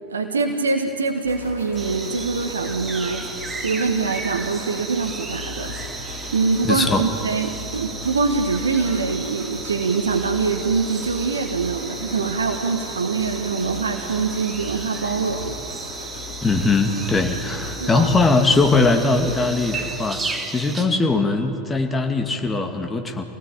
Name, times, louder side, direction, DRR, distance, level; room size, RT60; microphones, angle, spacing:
voice 1, 0.1-3.3 3.6-15.6 17.8-18.1, right 4 dB, 80° right, 4 dB, 1.4 m, -24 dB
sound 1, 1.2-20.1, left 4 dB, 65° left, 5.3 m, -38 dB
sound 2, 1.8-20.9, right 3 dB, 15° right, 2.6 m, -34 dB
voice 2, 6.6-7.1 16.4-23.2, left 3 dB, 20° left, 5 dB, 2.4 m, -20 dB
25.5 x 18.5 x 8.6 m, 2.9 s
figure-of-eight pair, 85°, 0 cm